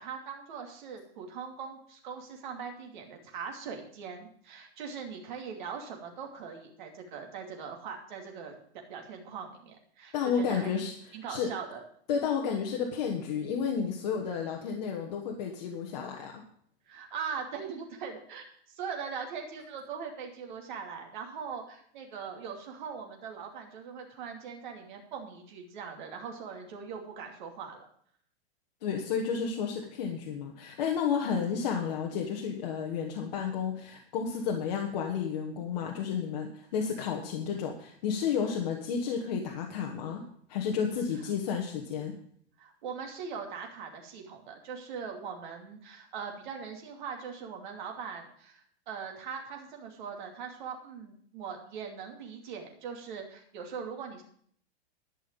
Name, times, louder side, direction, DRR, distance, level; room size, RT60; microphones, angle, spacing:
voice 1, 0.0-10.7 11.1-11.8 16.9-27.9 42.6-54.2, right 6 dB, 45° right, 2 dB, 2.6 m, -41 dB
voice 2, 10.1-10.9 11.3-11.5 12.1-16.3 28.8-40.2 40.5-42.1, left 6 dB, 40° left, 1 dB, 1.3 m, -31 dB
12.0 x 5.6 x 8.8 m, 0.63 s
supercardioid pair, 175°, 33 cm